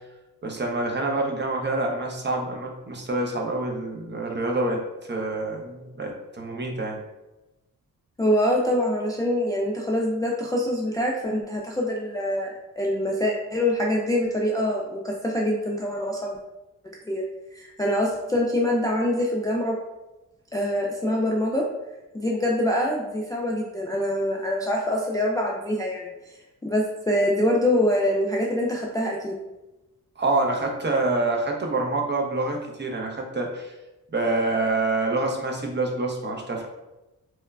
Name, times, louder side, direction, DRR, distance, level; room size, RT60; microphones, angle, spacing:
voice 1, 0.4-4.8 5.1-7.0 30.2-33.7 34.1-36.7, right 2 dB, 30° right, 0 dB, 0.6 m, -26 dB
voice 2, 8.2-16.4 17.1-17.3 17.5-19.8 20.5-21.7 22.1-29.4, left 1 dB, 10° left, -2 dB, 0.3 m, -25 dB
3.0 x 2.1 x 2.3 m, 1.0 s
supercardioid pair, 45°, 36 cm